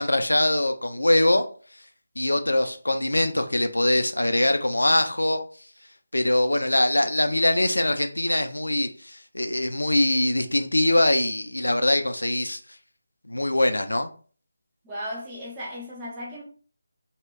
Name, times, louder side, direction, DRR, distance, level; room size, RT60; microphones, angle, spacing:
voice 1, 0.0-1.4 2.2-5.4 6.1-12.6 13.3-14.1, left 1 dB, 75° left, 0.4 m, -22 dB
voice 2, 14.8-16.4, equal, 10° right, 0.6 m, -35 dB
2.1 x 2.1 x 3.5 m
figure-of-eight pair, 155°, 0 cm